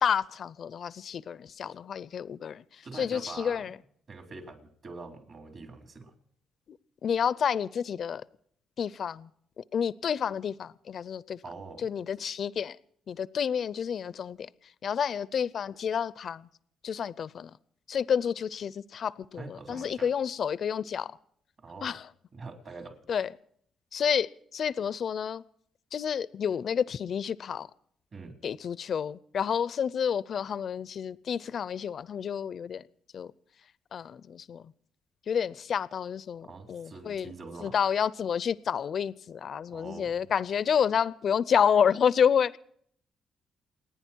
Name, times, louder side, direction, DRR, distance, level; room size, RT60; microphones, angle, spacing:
voice 1, 0.0-3.8 6.7-6.8 7.0-8.2 8.8-9.3 9.6-11.4 11.8-12.8 13.1-14.5 14.8-16.5 16.8-17.5 17.9-21.2 21.8-22.1 23.1-23.3 23.9-25.4 25.9-27.7 28.4-32.8 33.1-33.3 33.9-34.6 35.3-37.3 37.6-42.6, left 7 dB, 55° left, 0.5 m, -29 dB
voice 2, 2.8-3.7 4.1-6.1 11.4-11.9 19.4-20.1 21.6-22.0 22.3-23.0 28.1-28.4 36.4-37.8 39.7-40.2, right 3 dB, 50° right, 3.9 m, -44 dB
29.0 x 9.9 x 4.5 m
cardioid pair, 90°, 0 cm